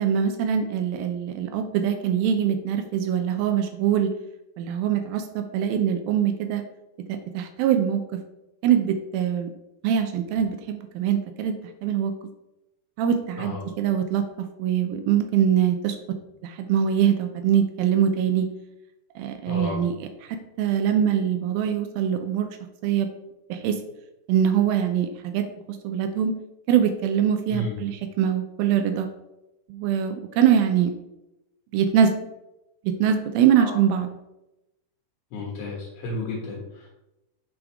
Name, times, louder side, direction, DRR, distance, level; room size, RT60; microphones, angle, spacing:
voice 1, 0.0-4.1 4.6-6.6 7.1-8.0 8.6-9.5 9.8-12.1 13.0-14.2 14.6-16.0 16.4-18.5 19.2-22.5 22.8-23.1 23.5-23.8 24.3-25.5 25.8-26.3 26.7-29.1 29.7-30.9 31.7-32.1 32.8-34.2, right 9 dB, 80° right, 7 dB, 2.2 m, -23 dB
voice 2, 19.5-19.8 27.5-27.8 33.6-33.8 35.3-36.9, left 2 dB, 75° left, -4 dB, 3.5 m, -32 dB
9.6 x 5.0 x 3.5 m, 0.93 s
omnidirectional pair, 4.7 m